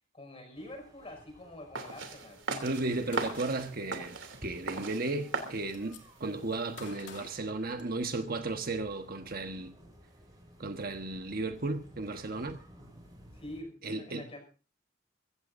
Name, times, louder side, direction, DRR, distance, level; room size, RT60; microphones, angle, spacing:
voice 1, 0.1-2.4 13.3-14.4, left 1 dB, 30° left, 5.8 m, -46 dB
sound 1, 0.5-13.6, equal, 20° right, 6.8 m, -56 dB
sound 2, 1.8-6.8, right 3 dB, 80° right, 3.0 m, -39 dB
voice 2, 2.6-9.8 10.6-12.6 13.8-14.2, right 2 dB, 50° right, 1.4 m, -35 dB
Gunshot gunfire, 3.1-3.8 4.9-5.0 5.3-6.0 6.8-8.3, left 5 dB, 70° left, 2.7 m, -50 dB
24.0 x 15.5 x 2.7 m
head